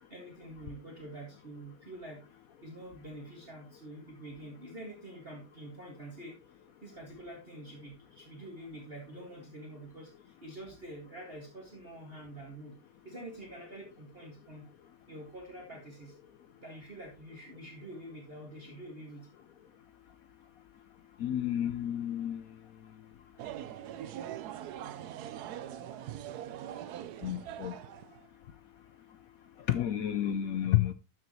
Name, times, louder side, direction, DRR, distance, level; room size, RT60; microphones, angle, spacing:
voice 1, 0.0-2.2 2.6-12.8 13.0-14.7 15.1-16.2 16.6-19.3, right 1 dB, 30° right, 2.0 m, -47 dB
voice 2, 21.2-22.6 27.2-27.8 29.6-30.9, left 11 dB, 70° left, 0.9 m, -30 dB
sound 1, 23.4-28.3, right 11 dB, 70° right, 1.1 m, -42 dB
12.0 x 7.2 x 3.0 m
omnidirectional pair, 2.0 m